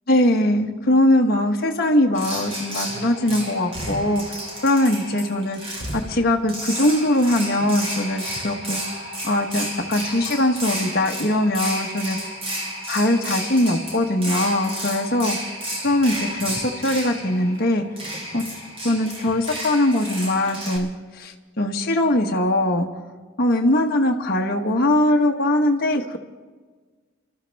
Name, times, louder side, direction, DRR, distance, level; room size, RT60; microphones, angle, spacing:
voice 1, 0.1-8.8 9.2-12.2 12.9-15.4 15.8-17.8 18.3-18.4 18.8-20.9 21.1-22.9 23.4-26.2, left 1 dB, 45° left, 0 dB, 1.2 m, -21 dB
sound 1, 2.1-20.8, right 1 dB, 25° right, 3.1 m, -32 dB
27.5 x 13.5 x 3.4 m, 1.4 s
head